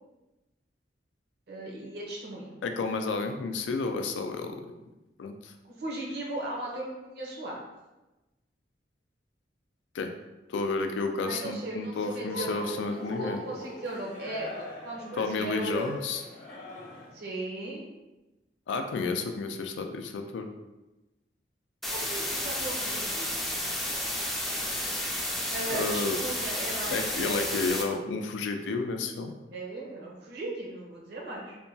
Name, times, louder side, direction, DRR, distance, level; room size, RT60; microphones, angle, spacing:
voice 1, 1.5-2.6 5.6-7.6 11.2-15.9 17.1-17.9 21.9-23.3 25.5-27.4 29.5-31.6, right 2 dB, 65° right, -3 dB, 0.7 m, -37 dB
voice 2, 2.6-4.6 5.2-5.5 9.9-10.1 10.5-13.4 15.1-16.2 18.7-20.5 25.7-26.2 26.9-29.3, left 3 dB, 90° left, 6 dB, 0.3 m, -31 dB
Cheering, 12.2-17.2, left 1 dB, 55° left, 0.9 m, -40 dB
sound 1, 21.8-27.8, left 1 dB, ahead, 0.3 m, -32 dB
2.8 x 2.2 x 2.6 m, 1.0 s
head